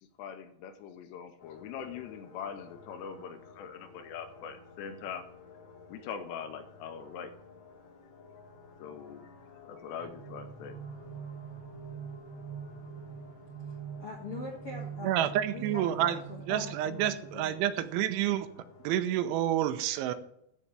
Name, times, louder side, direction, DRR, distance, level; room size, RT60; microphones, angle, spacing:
voice 1, 0.2-5.3 5.9-7.4 8.8-9.3 9.7-10.8, left 7 dB, 80° left, 9 dB, 2.7 m, -42 dB
sound 1, 1.4-19.0, left 3 dB, 40° left, 4.5 m, -54 dB
sound 2, 9.9-17.9, right 7 dB, 55° right, 1.1 m, -44 dB
voice 2, 14.0-17.6, left 3 dB, 60° left, -2 dB, 1.5 m, -43 dB
voice 3, 15.0-16.2 16.5-18.5 18.8-20.1, right 12 dB, 85° right, 11 dB, 3.2 m, -29 dB
13.5 x 4.6 x 8.8 m, 0.75 s
omnidirectional pair, 5.4 m